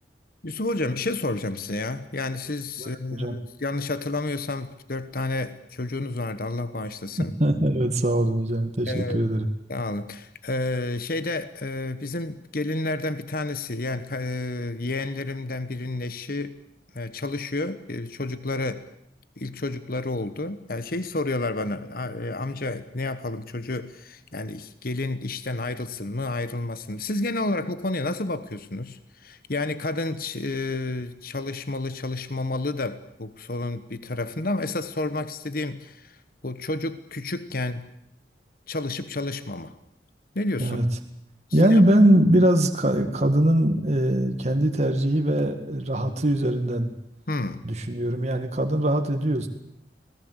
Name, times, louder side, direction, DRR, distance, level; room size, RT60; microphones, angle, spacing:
voice 1, 0.4-7.3 8.9-9.3 9.7-16.6 16.9-18.8 19.4-36.2 36.4-37.8 38.7-39.7 40.3-40.8 41.5-41.8 47.3-47.6, left 2 dB, 55° left, 12 dB, 1.3 m, -30 dB
voice 2, 2.8-3.4 7.4-9.5 40.6-40.8 41.5-46.9 47.6-49.5, right 1 dB, 40° right, 4 dB, 2.0 m, -22 dB
25.5 x 19.0 x 8.1 m, 0.71 s
head